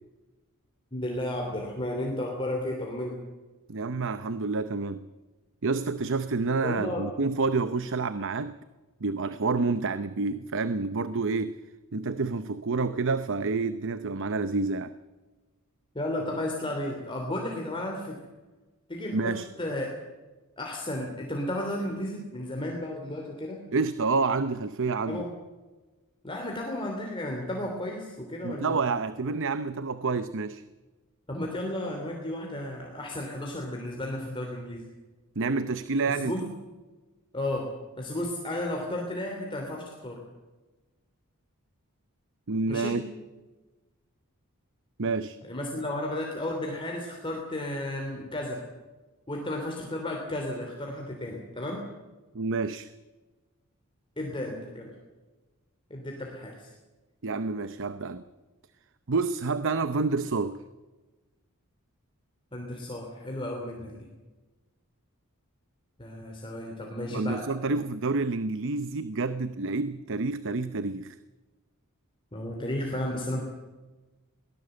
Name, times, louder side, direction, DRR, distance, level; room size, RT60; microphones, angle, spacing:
voice 1, 0.9-3.2 6.6-7.1 15.9-18.2 18.9-19.9 20.6-23.6 25.1-25.3 26.2-28.8 31.3-34.9 36.2-36.5 37.3-37.7 38.0-40.2 42.7-43.0 45.4-48.6 49.3-51.8 54.2-54.9 55.9-56.7 62.5-64.1 66.0-67.4 72.3-73.4, left 1 dB, 25° left, 0 dB, 3.1 m, -33 dB
voice 2, 3.7-5.1 5.6-8.6 9.0-11.6 11.9-14.9 19.1-19.5 23.7-25.2 28.4-30.6 35.4-36.4 42.5-43.0 45.0-45.4 52.3-52.9 57.2-58.2 59.1-60.6 67.1-71.2, right 4 dB, 60° right, 12 dB, 0.8 m, -28 dB
22.0 x 18.0 x 7.9 m, 1.2 s
head